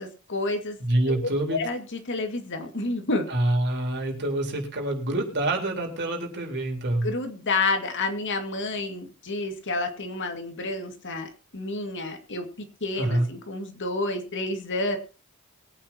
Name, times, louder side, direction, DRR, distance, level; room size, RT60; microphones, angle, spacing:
voice 1, 0.0-0.8 1.1-1.2 1.5-3.3 7.0-12.5 12.8-15.0, left 2 dB, 55° left, 5 dB, 2.2 m, -29 dB
voice 2, 0.8-1.6 3.3-7.1 13.0-13.3, right 1 dB, 50° right, 2 dB, 4.1 m, -26 dB
22.5 x 8.8 x 2.9 m, 0.34 s
head